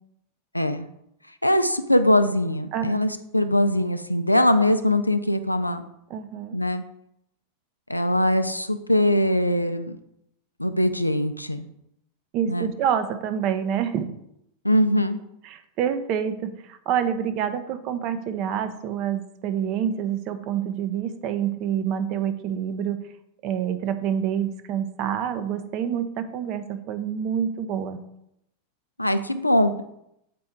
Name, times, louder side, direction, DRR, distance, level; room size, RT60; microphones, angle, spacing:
voice 1, 0.5-0.9 1.4-5.8 6.5-6.8 7.9-9.9 10.6-11.7 12.5-12.7 14.6-15.2 29.0-29.8, left 1 dB, 85° left, 9 dB, 0.4 m, -22 dB
voice 2, 6.1-6.6 12.3-14.1 15.4-23.0 23.4-28.0, right 8 dB, 40° right, 9 dB, 0.6 m, -27 dB
7.5 x 4.3 x 3.6 m, 0.79 s
figure-of-eight pair, 90°, 0 cm